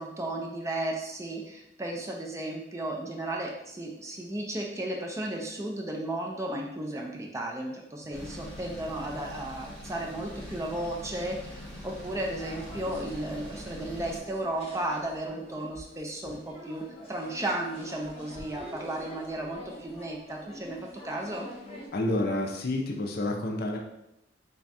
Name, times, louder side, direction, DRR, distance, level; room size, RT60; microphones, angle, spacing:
voice 1, 0.0-20.8 21.0-21.5, right 1 dB, 15° right, 0 dB, 0.5 m, -34 dB
sound 1, 8.1-14.2, equal, 5° left, 1.0 m, -43 dB
sound 2, 12.4-21.9, left 1 dB, 35° left, 1.1 m, -46 dB
voice 2, 21.9-23.8, left 1 dB, 55° left, 1 dB, 0.5 m, -29 dB
3.4 x 2.3 x 4.0 m, 0.85 s
head